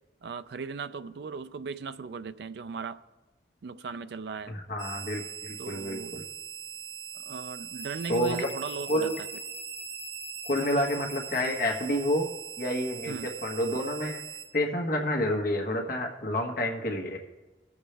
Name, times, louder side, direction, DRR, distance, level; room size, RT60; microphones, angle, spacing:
voice 1, 0.2-3.0 3.6-4.5 5.6-6.2 7.1-9.1 13.1-13.3, right 5 dB, 60° right, 0.4 m, -38 dB
voice 2, 4.5-6.2 8.1-8.5 8.9-9.2 10.4-12.3 12.6-14.2 14.5-17.2, left 1 dB, 50° left, 1.4 m, -29 dB
sound 1, 4.8-14.4, right 7 dB, 85° right, 1.8 m, -40 dB
18.0 x 7.2 x 3.4 m
head